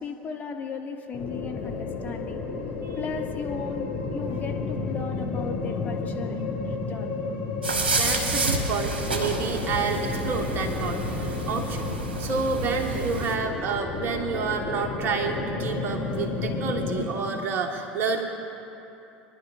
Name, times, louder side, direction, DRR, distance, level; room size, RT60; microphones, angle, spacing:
voice 1, 0.0-2.4 2.9-7.2, left 5 dB, 30° left, 3 dB, 1.1 m, -36 dB
sound 1, 1.1-17.1, left 4 dB, 60° left, 1.9 m, -32 dB
sound 2, 7.6-13.4, right 2 dB, 75° right, 1.1 m, -29 dB
voice 2, 7.9-11.9 12.2-18.2, right 5 dB, 40° right, 3 dB, 1.4 m, -29 dB
24.0 x 11.0 x 2.5 m, 2.9 s
figure-of-eight pair, 70°, 6 cm